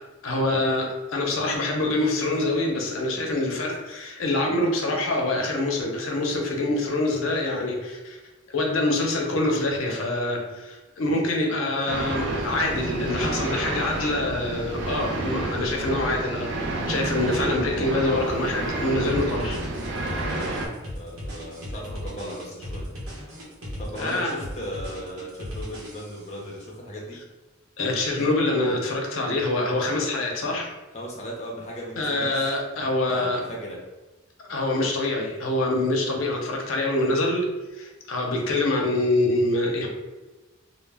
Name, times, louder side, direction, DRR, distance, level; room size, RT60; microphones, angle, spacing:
voice 1, 0.2-8.2 8.5-16.5 16.9-19.6 24.0-24.3 27.8-30.7 32.0-33.4 34.4-37.5 37.7-39.9, left 2 dB, 80° left, 1 dB, 0.5 m, -25 dB
sound 1, 11.9-20.7, right 2 dB, 65° right, 0.4 m, -29 dB
sound 2, 19.1-26.4, equal, 90° right, 0.8 m, -37 dB
voice 2, 21.0-22.9 23.8-27.2 30.9-32.5 33.1-33.8, equal, 35° left, -3 dB, 0.5 m, -36 dB
2.0 x 2.0 x 3.3 m, 1.2 s
head